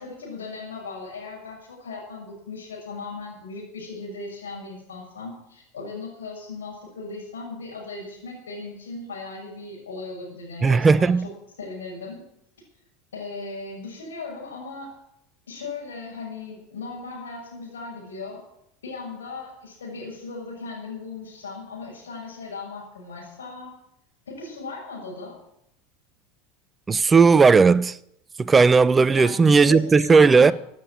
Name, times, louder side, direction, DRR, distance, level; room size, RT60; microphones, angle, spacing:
voice 1, 0.0-11.3 11.6-12.2 13.1-15.0 15.5-18.5 18.8-23.7 24.3-25.4 29.1-30.5, left 3 dB, 80° left, 6.4 m, -37 dB
voice 2, 10.6-11.2 26.9-28.0 28.4-30.5, right 4 dB, 20° right, 0.6 m, -16 dB
16.0 x 9.1 x 8.8 m
figure-of-eight pair, 80°, 0 cm